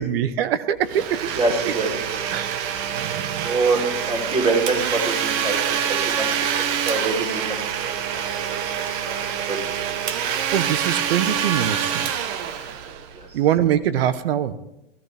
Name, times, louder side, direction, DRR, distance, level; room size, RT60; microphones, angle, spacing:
voice 1, 0.0-1.2 1.6-1.7 2.3-2.6 2.9-3.5 9.7-9.9 10.5-12.1 13.3-14.6, right 10 dB, 70° right, 14 dB, 1.0 m, -23 dB
Domestic sounds home sounds, 0.8-13.4, right 8 dB, 45° right, 1.2 m, -26 dB
voice 2, 1.3-2.2 3.4-6.3 6.8-8.2 9.0-9.6 13.1-13.3, right 3 dB, 20° right, 1 dB, 3.9 m, -25 dB
16.0 x 14.0 x 3.5 m, 0.91 s
hypercardioid pair, 120°, 31 cm